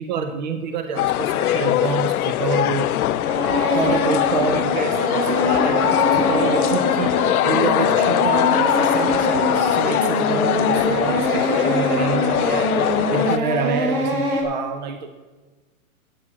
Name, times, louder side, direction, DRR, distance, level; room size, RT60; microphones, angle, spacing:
voice 1, 0.0-2.9 3.7-12.8 13.1-15.1, right 5 dB, 35° right, 7 dB, 0.5 m, -27 dB
sound 1, 1.0-13.4, left 14 dB, 85° left, 0.5 m, -21 dB
sound 2, 2.9-14.4, right 1 dB, 75° right, 3.4 m, -24 dB
8.6 x 7.2 x 8.4 m, 1.3 s
hypercardioid pair, 165°, 43 cm